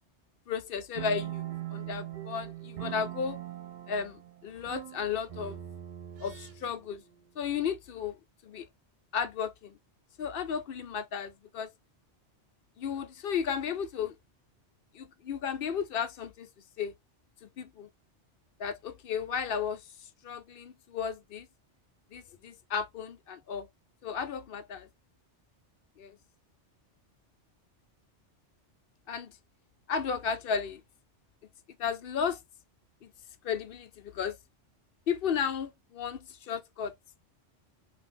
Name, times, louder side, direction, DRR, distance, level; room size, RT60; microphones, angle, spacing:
voice 1, 0.5-1.5 1.7-3.4 3.9-5.6 6.2-7.0 7.4-8.2 8.4-8.7 9.1-9.8 10.2-11.7 12.8-14.2 14.9-16.5 16.8-16.9 17.4-17.9 18.6-19.8 20.2-21.5 22.1-23.7 24.0-24.9 26.0-26.2 29.1-29.3 29.9-30.8 31.8-32.4 33.0-33.1 33.4-34.4 35.1-36.9, left 7 dB, 60° left, 0.7 m, -34 dB
sound 1, 0.9-6.9, right 13 dB, 60° right, 0.5 m, -41 dB
3.9 x 2.4 x 3.5 m
omnidirectional pair, 1.2 m